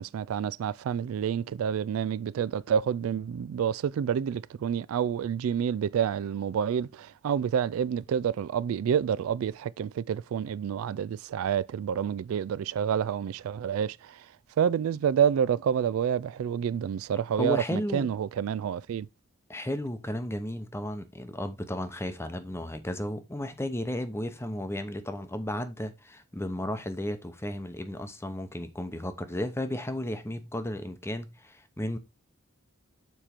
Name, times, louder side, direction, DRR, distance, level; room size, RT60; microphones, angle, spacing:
voice 1, 0.0-14.3 14.6-19.1, right 8 dB, 70° right, 0.3 m, -28 dB
voice 2, 17.4-18.1 19.5-32.0, left 1 dB, 10° left, 0.8 m, -34 dB
7.0 x 4.4 x 4.3 m
head